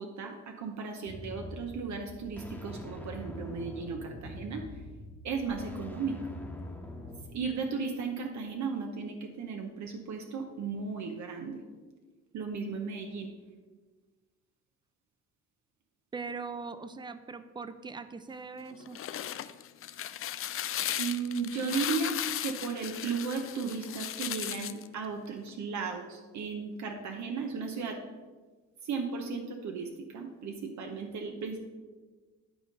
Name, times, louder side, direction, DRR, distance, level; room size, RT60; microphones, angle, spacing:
voice 1, 0.0-4.8 5.2-6.2 7.3-11.6 12.3-13.3 20.8-28.0 28.8-31.6, right 5 dB, 70° right, 4 dB, 0.8 m, -35 dB
sound 1, 1.1-7.2, left 1 dB, 5° left, 1.1 m, -44 dB
voice 2, 16.1-19.0, right 4 dB, 15° right, 12 dB, 0.5 m, -41 dB
sound 2, 18.7-24.9, left 11 dB, 45° left, 0.4 m, -36 dB
11.0 x 3.8 x 5.2 m, 1.4 s
cardioid pair, 90°, 30 cm